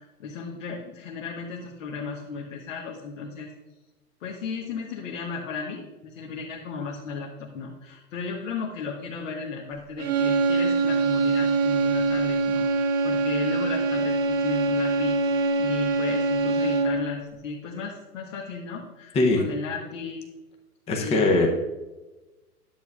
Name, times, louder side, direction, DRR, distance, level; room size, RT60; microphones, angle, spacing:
voice 1, 0.0-3.5 4.2-15.2 15.6-20.2 20.9-21.5, left 5 dB, 50° left, -1 dB, 1.3 m, -35 dB
sound 1, 10.0-17.1, right 3 dB, 55° right, 1.1 m, -24 dB
voice 2, 20.9-21.5, left 2 dB, 15° left, 2 dB, 0.7 m, -20 dB
10.5 x 8.1 x 2.4 m, 1.1 s
hypercardioid pair, 115°, 47 cm